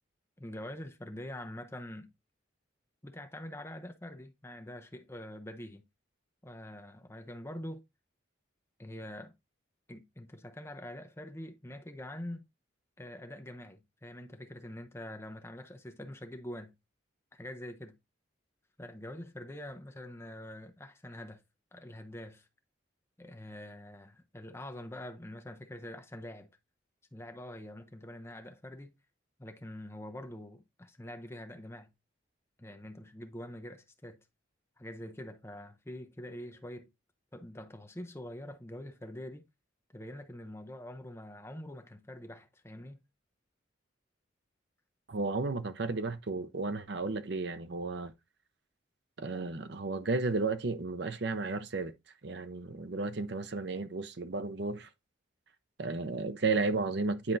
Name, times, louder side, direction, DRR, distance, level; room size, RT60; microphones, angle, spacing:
voice 1, 0.4-2.1 3.0-5.8 6.4-7.8 8.8-9.3 9.9-12.4 13.0-16.7 17.3-18.0 18.8-21.4 21.7-22.5 23.2-26.5 27.1-28.9 29.4-31.9 32.6-34.2 34.8-36.9 37.3-39.5 39.9-43.0, left 1 dB, 15° left, 0.7 m, -45 dB
voice 2, 45.1-48.1 49.2-51.9 52.2-54.9 55.8-57.4, right 3 dB, 60° right, 0.6 m, -33 dB
9.7 x 4.3 x 2.6 m
head